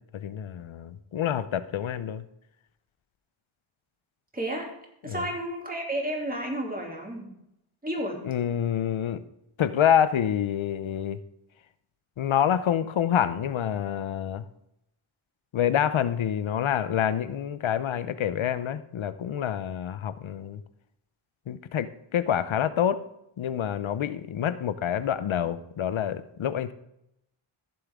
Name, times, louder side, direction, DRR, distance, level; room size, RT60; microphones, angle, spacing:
voice 1, 0.0-2.2 5.1-5.2 8.2-9.2 9.6-11.2 12.2-14.4 15.5-20.6 21.5-23.0 23.4-26.7, left 9 dB, 70° left, 13 dB, 0.7 m, -27 dB
voice 2, 4.3-4.7 5.0-7.3 7.8-8.2, right 1 dB, 15° right, 0 dB, 2.8 m, -31 dB
15.0 x 7.2 x 3.6 m, 0.82 s
wide cardioid pair, 100°, 49 cm